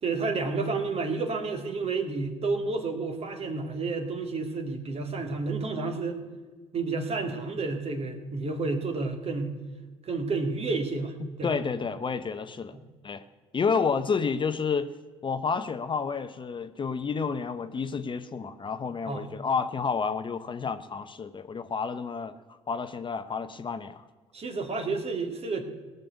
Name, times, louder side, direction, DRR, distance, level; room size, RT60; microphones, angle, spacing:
voice 1, 0.0-6.2 6.7-9.5 10.1-11.6 19.1-19.3 24.3-25.6, right 3 dB, 40° right, 6 dB, 2.2 m, -30 dB
voice 2, 11.2-12.8 13.0-13.2 13.5-14.9 15.2-22.4 22.7-24.0, left 5 dB, 35° left, 11 dB, 0.8 m, -30 dB
17.5 x 6.8 x 8.3 m, 1.4 s
hypercardioid pair, 60°, 15 cm